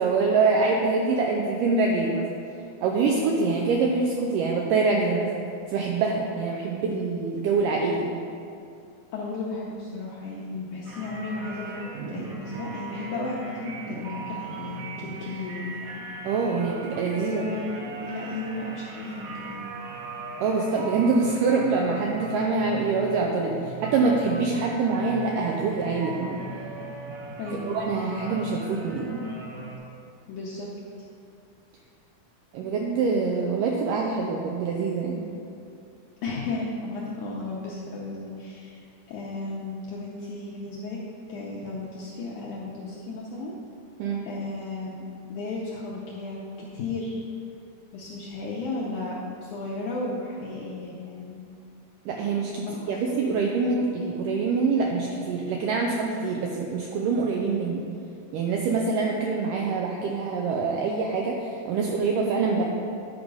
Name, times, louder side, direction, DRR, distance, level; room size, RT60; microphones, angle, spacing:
voice 1, 0.0-2.3 2.8-5.4 5.7-8.2 16.2-17.5 20.4-26.4 27.7-29.2 32.5-35.3 44.0-44.2 52.1-57.8 58.3-62.6, right 4 dB, 85° right, -1 dB, 1.9 m, -25 dB
voice 2, 7.6-7.9 9.1-16.0 17.1-19.6 27.4-27.8 30.3-30.7 36.2-41.0 41.3-43.6 44.2-45.0 45.3-47.2 47.9-51.5 52.8-53.2, left 2 dB, 75° left, -5 dB, 1.8 m, -34 dB
sound 1, 10.9-29.8, right 2 dB, 65° right, 1.8 m, -39 dB
10.0 x 4.7 x 5.3 m, 2.5 s
omnidirectional pair, 4.4 m